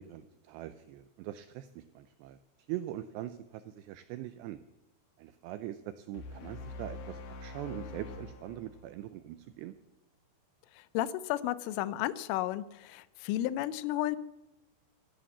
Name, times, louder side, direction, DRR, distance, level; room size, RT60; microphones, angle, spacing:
voice 1, 0.0-2.4 2.7-4.6 5.2-9.7, right 13 dB, 85° right, 12 dB, 2.4 m, -42 dB
sound 1, 6.1-9.5, left 3 dB, 65° left, 2.8 m, -45 dB
voice 2, 10.8-14.2, left 13 dB, 85° left, 17 dB, 3.2 m, -33 dB
13.5 x 11.5 x 7.2 m, 0.96 s
omnidirectional pair, 5.6 m